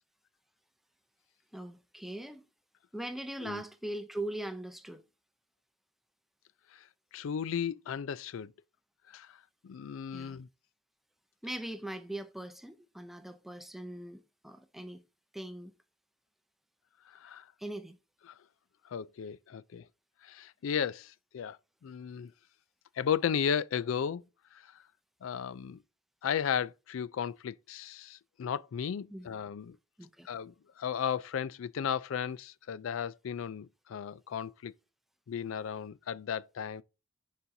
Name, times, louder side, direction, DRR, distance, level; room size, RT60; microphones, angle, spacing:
voice 1, 1.5-2.4 2.9-5.0 10.1-10.4 11.4-15.0 15.3-15.7 17.6-18.0 29.1-29.3 30.0-30.3, right 1 dB, ahead, 0.5 m, -40 dB
voice 2, 7.1-8.5 9.1-9.4 9.6-10.5 17.1-17.4 18.9-19.9 20.2-21.6 21.8-22.3 23.0-24.2 25.2-25.8 26.2-29.8 30.3-34.7 35.3-36.8, left 8 dB, 70° left, 0.3 m, -35 dB
10.0 x 4.2 x 2.6 m
head